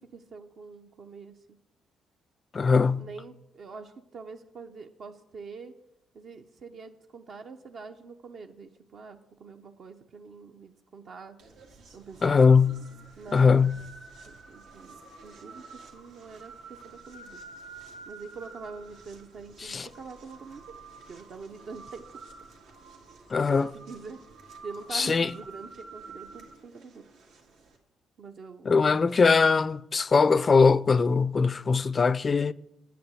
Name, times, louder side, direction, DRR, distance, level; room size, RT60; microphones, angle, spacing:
voice 1, 0.0-1.6 3.0-5.8 6.1-11.4 11.9-12.6 13.2-13.7 14.3-17.4 18.1-20.8 21.1-22.1 23.5-24.2 24.6-27.1 28.2-29.0, right 4 dB, 60° right, 0.7 m, -44 dB
voice 2, 2.5-3.1 12.2-12.8 13.3-13.8 19.6-19.9 23.3-23.7 24.9-25.3 28.6-32.5, left 5 dB, 35° left, 0.3 m, -21 dB
sound 1, 11.4-27.8, right 4 dB, 90° right, 1.9 m, -49 dB
8.1 x 6.8 x 7.7 m
cardioid pair, 90°, 0 cm